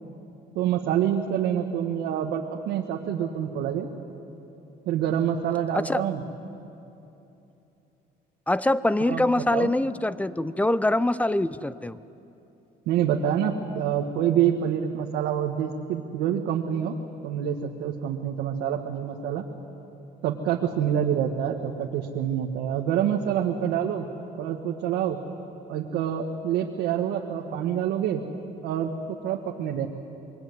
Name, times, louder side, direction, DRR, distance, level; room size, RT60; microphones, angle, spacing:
voice 1, 0.6-3.9 4.9-6.2 9.0-9.7 12.9-16.9 17.2-19.4 20.2-24.1 24.4-25.2 25.7-28.2 28.6-29.9, right 9 dB, 90° right, 1 dB, 1.6 m, -27 dB
voice 2, 5.7-6.0 8.5-12.0, left 1 dB, 10° left, 16 dB, 0.7 m, -24 dB
26.0 x 22.5 x 9.6 m, 2.9 s
cardioid pair, 110°, 17 cm